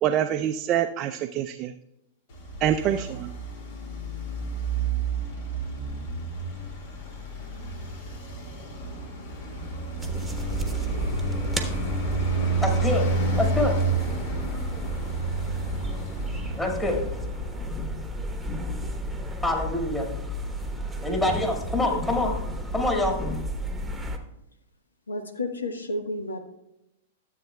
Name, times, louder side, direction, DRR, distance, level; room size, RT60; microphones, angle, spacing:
voice 1, 0.0-1.8 2.6-3.3, right 10 dB, 35° right, 6 dB, 0.4 m, -25 dB
Traffic noise roadway noise, 2.3-17.8, right 3 dB, 60° left, 1.9 m, -30 dB
sound 1, 10.0-24.2, equal, 5° right, 1.1 m, -32 dB
voice 2, 12.3-15.8 16.6-23.4, left 1 dB, 10° left, 0 dB, 2.0 m, -29 dB
voice 3, 25.1-26.4, left 1 dB, 85° left, 7 dB, 1.1 m, -31 dB
13.0 x 7.8 x 2.3 m, 0.87 s
hypercardioid pair, 105°, 0 cm